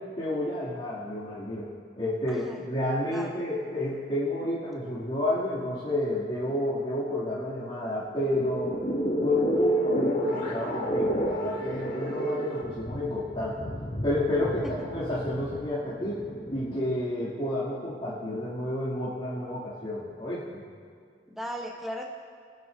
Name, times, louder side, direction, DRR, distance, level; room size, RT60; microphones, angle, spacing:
voice 1, 0.2-1.7 2.0-8.8 9.2-13.7 14.0-16.2 16.5-20.6, left 1 dB, 30° left, -13 dB, 2.9 m, -30 dB
voice 2, 2.3-2.6 3.1-3.5 14.6-14.7 21.3-22.1, equal, ahead, -1 dB, 1.1 m, -37 dB
sound 1, 8.2-16.9, right 1 dB, 45° left, 2.2 m, -30 dB
23.0 x 10.5 x 2.8 m, 2.2 s
head